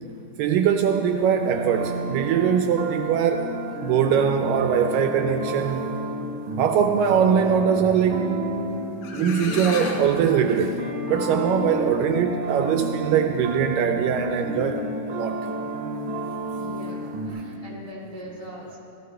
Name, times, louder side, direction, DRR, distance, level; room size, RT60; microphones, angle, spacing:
voice 1, 0.4-3.5 3.8-5.9 6.6-8.3 9.2-10.8 11.1-15.4, right 7 dB, 80° right, 6 dB, 2.0 m, -22 dB
sound 1, 1.1-17.3, right 1 dB, 65° right, 1.3 m, -31 dB
sound 2, 8.7-8.8 9.0-10.1, left 4 dB, 90° left, 3.0 m, -32 dB
voice 2, 16.6-18.8, equal, 50° left, -5 dB, 0.9 m, -40 dB
17.0 x 13.5 x 3.3 m, 2.8 s
omnidirectional pair, 4.2 m